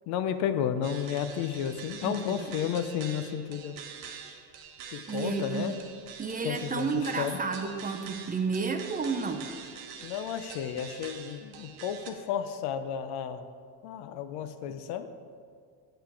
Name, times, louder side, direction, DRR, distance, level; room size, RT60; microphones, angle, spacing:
voice 1, 0.1-3.8 4.9-5.7 6.4-6.9 7.2-7.4 10.0-13.4 13.8-15.1, left 9 dB, 65° left, 10 dB, 0.7 m, -32 dB
sound 1, 0.8-12.1, right 7 dB, 75° right, 1.0 m, -45 dB
voice 2, 2.0-2.4 5.1-5.8 6.2-9.5, right 4 dB, 20° right, 6 dB, 0.5 m, -31 dB
8.0 x 6.8 x 4.6 m, 2.1 s
supercardioid pair, 110°, 41 cm